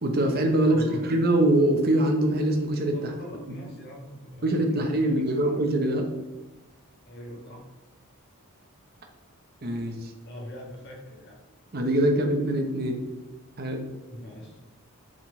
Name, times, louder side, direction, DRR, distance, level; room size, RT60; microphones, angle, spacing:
voice 1, 0.0-3.1 3.5-3.6 4.4-6.1 9.6-10.1 11.7-13.0 13.6-13.8, right 1 dB, 45° right, 3 dB, 0.8 m, -23 dB
voice 2, 0.6-1.1 2.9-5.6 7.1-7.6 10.2-11.4 14.1-14.6, equal, 50° left, -1 dB, 1.7 m, -41 dB
7.4 x 3.7 x 4.7 m, 1.1 s
head